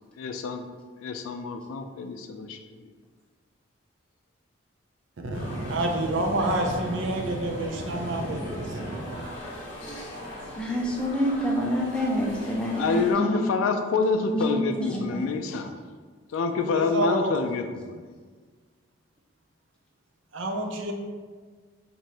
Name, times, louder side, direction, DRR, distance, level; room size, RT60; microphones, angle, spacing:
voice 1, 0.2-0.7 1.0-2.8 12.7-15.7 16.3-18.0, left 4 dB, 85° left, 5 dB, 0.3 m, -27 dB
voice 2, 5.2-9.1 16.6-17.3 20.3-20.9, right 1 dB, 70° right, 3 dB, 0.5 m, -28 dB
sound 1, 5.3-13.1, equal, 65° left, 1.3 m, -40 dB
voice 3, 10.6-13.4 14.3-15.2, equal, 5° left, -3 dB, 0.5 m, -27 dB
4.5 x 2.6 x 2.9 m, 1.5 s
head